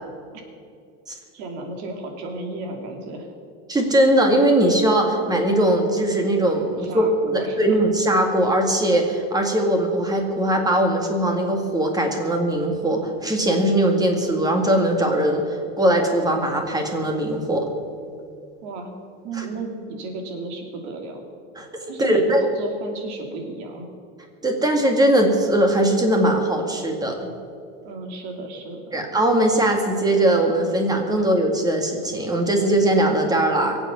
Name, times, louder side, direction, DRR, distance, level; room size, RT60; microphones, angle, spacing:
voice 1, 1.3-3.3 6.8-7.7 18.6-18.9 19.2-21.2 21.9-23.9 27.8-29.0, right 3 dB, 85° right, 3 dB, 3.0 m, -33 dB
voice 2, 3.7-17.7 19.3-19.4 21.6-21.7 22.0-22.5 24.4-27.2 28.9-33.8, right 1 dB, 10° right, 3 dB, 2.0 m, -20 dB
23.0 x 8.2 x 6.9 m, 2.4 s
cardioid pair, 150°, 32 cm